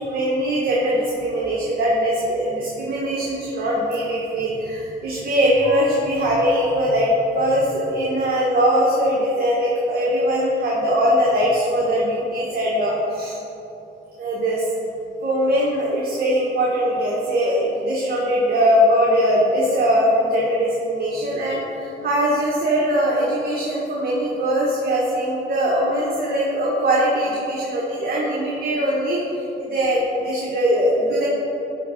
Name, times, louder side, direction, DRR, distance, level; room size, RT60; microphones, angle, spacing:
voice 1, 0.0-13.4 14.2-14.7 15.2-29.2 29.6-31.3, equal, 50° right, -5 dB, 1.4 m, -21 dB
10.5 x 3.7 x 5.0 m, 3.0 s
cardioid pair, 90°, 20 cm